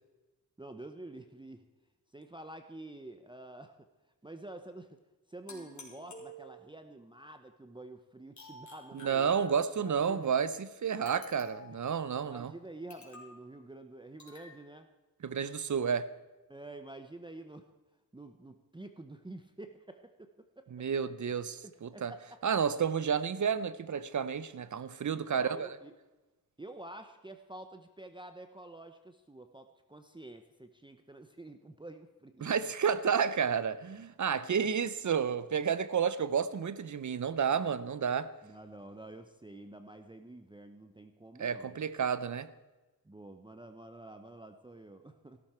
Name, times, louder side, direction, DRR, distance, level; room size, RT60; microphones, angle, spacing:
voice 1, 0.6-1.7 2.1-3.9 4.2-5.0 5.3-9.4 9.8-10.3 11.7-11.8 12.2-14.9 16.5-17.7 18.1-20.7 21.6-22.6 25.1-25.9 26.6-32.5 34.8-34.9 38.4-41.8 43.0-45.4, right 2 dB, 15° right, 0.8 m, -49 dB
sound 1, 5.5-6.9 8.4-9.8 11.1-11.8 12.9-13.4 14.2-14.5, left 1 dB, 50° left, 3.6 m, -51 dB
voice 2, 8.9-12.5 15.2-16.1 20.7-22.1 22.4-25.7 32.4-38.3 41.4-42.5, right 7 dB, 55° right, 0.7 m, -31 dB
15.5 x 13.0 x 4.4 m
wide cardioid pair, 90°, 36 cm